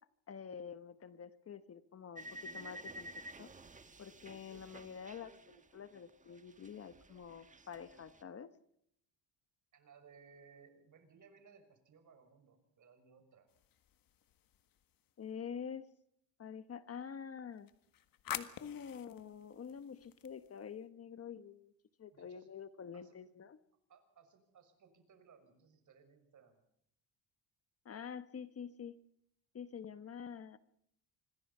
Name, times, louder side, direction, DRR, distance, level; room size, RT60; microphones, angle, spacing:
voice 1, 0.3-3.5 4.0-8.5 15.2-15.9 16.4-17.7 18.3-21.7 22.0-23.6 27.8-29.0 29.5-30.6, left 7 dB, 35° left, 12 dB, 1.2 m, -47 dB
sound 1, 2.2-6.1 6.3-8.2, right 1 dB, 15° right, 1.4 m, -51 dB
voice 2, 9.7-13.5 22.1-22.5 22.9-23.2 23.9-26.6, right 5 dB, 45° right, 7 dB, 6.3 m, -63 dB
sound 2, 13.5-15.3 17.5-20.8, left 10 dB, 50° left, 1.8 m, -48 dB
26.5 x 20.5 x 5.6 m, 0.72 s
cardioid pair, 120°, 43 cm